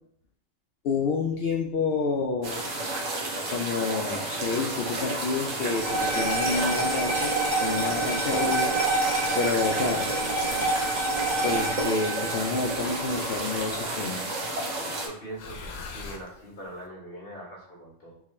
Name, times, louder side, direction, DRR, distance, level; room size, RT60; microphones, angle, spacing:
voice 1, 0.8-2.6 3.5-7.3 7.6-8.8 9.3-10.1 11.4-14.2, left 4 dB, 65° left, 0 dB, 0.6 m, -29 dB
sound 1, 2.4-15.1, right 2 dB, 75° right, 1.2 m, -32 dB
sound 2, 5.8-14.3, right 2 dB, 40° right, 1.1 m, -28 dB
sound 3, 6.3-6.9 7.9-9.1 10.1-11.4 12.7-14.2 15.3-16.7, left 4 dB, 85° left, 1.0 m, -44 dB
voice 2, 15.0-18.2, right 1 dB, 50° left, -3 dB, 1.6 m, -42 dB
4.6 x 2.7 x 3.2 m, 0.66 s
omnidirectional pair, 1.3 m